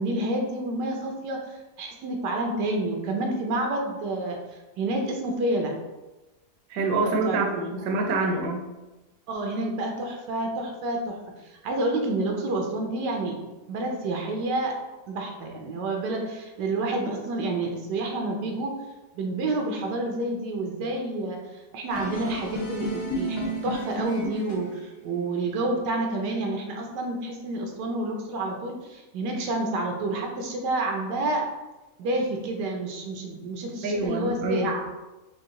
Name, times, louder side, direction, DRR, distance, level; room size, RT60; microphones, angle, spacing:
voice 1, 0.0-5.7 7.0-7.7 9.3-13.4 13.7-14.7 15.1-18.7 19.1-31.4 32.0-35.0, right 2 dB, 85° right, 1 dB, 1.3 m, -29 dB
voice 2, 6.7-8.6 33.8-34.7, right 2 dB, 70° right, 2 dB, 1.0 m, -26 dB
sound 1, 21.9-24.8, right 1 dB, 50° left, 1.3 m, -32 dB
4.8 x 2.3 x 3.6 m, 1.1 s
omnidirectional pair, 1.8 m